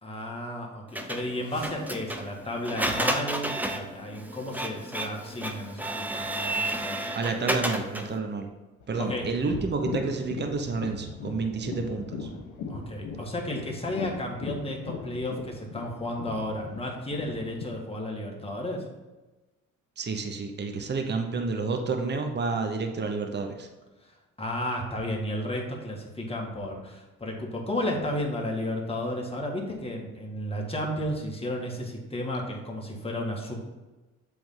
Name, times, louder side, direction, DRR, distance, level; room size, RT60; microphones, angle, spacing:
voice 1, 0.0-7.1 9.0-9.3 12.7-18.9 24.4-33.6, left 1 dB, 20° left, -1 dB, 1.7 m, -33 dB
Printer, 0.9-8.2, right 1 dB, 5° right, 0.7 m, -31 dB
sound 1, 1.3-3.7 4.7-4.9 5.7-5.8 6.0-6.9 7.2-7.8 8.5-8.6 8.9-9.0, left 2 dB, 45° left, 2.4 m, -49 dB
voice 2, 7.1-8.5 8.9-12.3 20.0-23.7, right 4 dB, 35° right, 5 dB, 0.9 m, -30 dB
sound 2, 8.8-17.7, left 4 dB, 75° left, 1.3 m, -38 dB
7.9 x 3.5 x 5.5 m, 1.1 s
cardioid pair, 90°, 30 cm